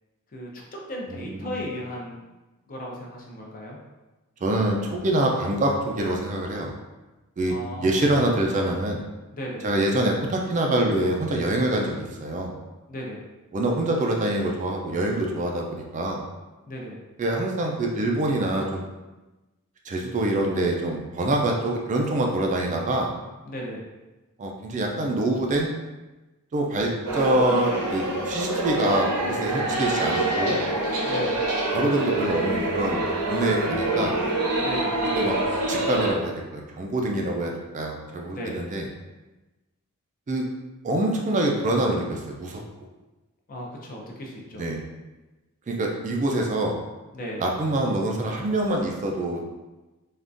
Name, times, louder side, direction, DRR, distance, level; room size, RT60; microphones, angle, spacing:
voice 1, 0.3-2.2 2.7-3.8 7.5-8.2 9.3-9.6 12.9-13.2 16.7-17.0 23.5-23.8 31.0-31.4 34.6-34.9 38.3-38.6 43.5-44.7 47.1-47.4, equal, 40° left, -2 dB, 0.5 m, -35 dB
voice 2, 1.1-1.6 4.4-6.7 7.4-7.5 7.8-9.0 9.6-12.5 13.5-16.2 17.2-18.8 19.9-23.1 24.4-25.7 26.5-30.6 31.7-34.2 35.2-35.4 35.7-38.8 40.3-40.5 40.8-42.6 44.5-44.8 45.7-46.7 47.4-49.4, right 1 dB, 35° right, 1 dB, 0.3 m, -25 dB
sound 1, 27.1-36.1, right 2 dB, 70° right, 0.7 m, -26 dB
3.5 x 2.3 x 2.5 m, 1.1 s
head